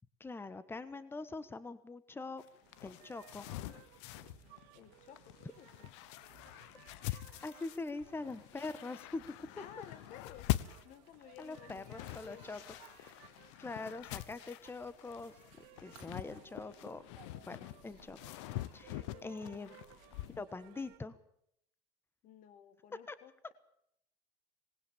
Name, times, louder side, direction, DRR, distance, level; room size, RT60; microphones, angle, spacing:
voice 1, 0.2-2.4 2.8-3.5 7.1-9.2 9.6-9.7 11.4-12.6 13.0-13.2 13.6-15.3 15.8-17.0 17.5-18.4 18.7-19.8 20.4-21.2 23.1-23.2, left 3 dB, 15° left, 15 dB, 1.3 m, -43 dB
sound 1, 2.4-20.4, left 16 dB, 85° left, 1.0 m, -44 dB
sound 2, 2.6-21.0, right 14 dB, 80° right, 2.0 m, -61 dB
voice 2, 4.7-5.9 9.6-10.6 10.8-12.8 19.0-19.8 22.2-23.5, left 9 dB, 60° left, 14 dB, 2.0 m, -55 dB
20.0 x 19.0 x 7.3 m, 0.73 s
supercardioid pair, 105°, 15 cm